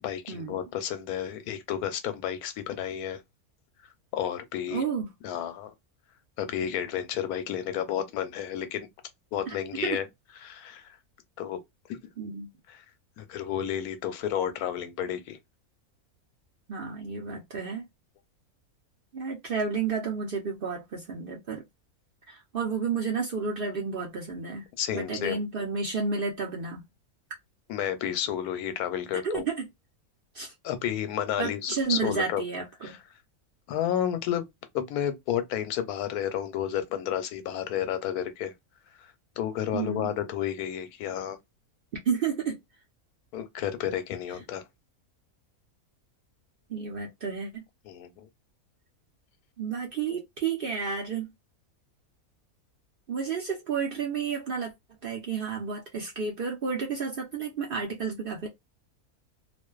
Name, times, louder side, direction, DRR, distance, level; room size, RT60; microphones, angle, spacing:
voice 1, 0.0-3.2 4.1-4.8 5.2-5.7 6.4-8.9 9.3-10.1 10.4-11.0 11.4-11.6 11.9-12.0 12.7-12.8 13.2-15.4 24.8-25.4 27.7-29.4 30.6-32.4 32.8-33.0 33.7-34.5 34.7-38.5 39.0-41.4 43.3-44.6 47.8-48.3, left 10 dB, 90° left, 1.1 m, -31 dB
voice 2, 4.7-5.1 9.5-9.6 9.8-10.0 12.2-12.5 16.7-17.8 19.1-21.6 22.3-24.7 24.9-26.8 29.2-29.7 30.3-30.5 31.4-32.9 39.7-40.2 42.0-42.6 46.7-47.6 49.6-51.3 53.1-54.7 55.0-58.5, right 5 dB, 55° right, 0.6 m, -31 dB
2.5 x 2.2 x 2.2 m
omnidirectional pair, 1.6 m